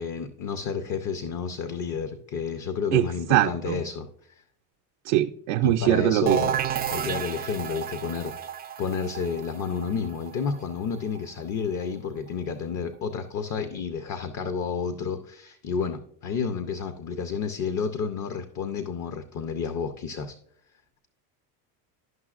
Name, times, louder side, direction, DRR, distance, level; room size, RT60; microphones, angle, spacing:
voice 1, 0.0-4.1 5.6-8.5 8.8-20.4, left 6 dB, 40° left, 9 dB, 0.6 m, -31 dB
voice 2, 3.3-3.7 5.1-6.4, right 13 dB, 75° right, 3 dB, 0.5 m, -22 dB
sound 1, 6.3-11.8, right 9 dB, 25° right, 0.3 m, -32 dB
11.0 x 5.7 x 2.4 m, 0.66 s
supercardioid pair, 100°, 45 cm